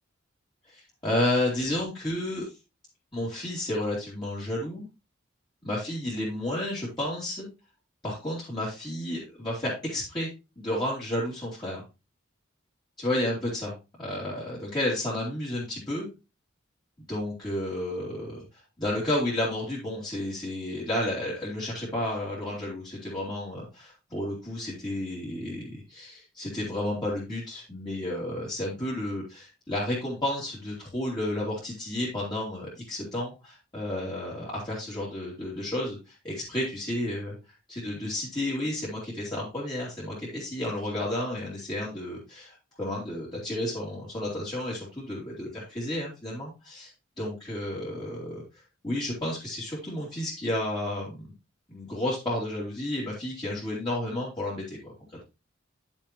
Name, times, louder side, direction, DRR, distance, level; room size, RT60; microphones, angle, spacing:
voice 1, 0.7-2.5 3.1-4.9 5.6-7.5 8.0-10.3 10.6-11.8 13.0-16.1 17.1-18.4 18.8-37.3 37.7-46.9 47.2-48.4 48.8-51.3 51.7-54.9, left 1 dB, 20° left, -7 dB, 3.0 m, -31 dB
10.0 x 7.3 x 3.1 m, 0.27 s
head